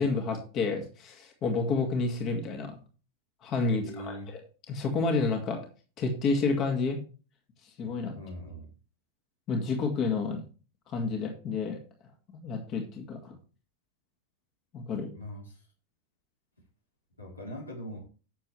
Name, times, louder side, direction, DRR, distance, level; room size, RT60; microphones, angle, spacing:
voice 1, 0.0-2.7 3.4-4.4 4.7-5.6 6.0-7.0 7.8-8.2 9.5-10.4 10.9-11.8 12.4-13.4 14.7-15.1, left 4 dB, 35° left, 3 dB, 2.2 m, -29 dB
voice 2, 3.8-4.3 8.1-8.7 15.1-15.7 17.2-18.0, equal, 80° left, -2 dB, 4.0 m, -41 dB
11.5 x 7.3 x 3.3 m, 0.35 s
figure-of-eight pair, 90°, 0 cm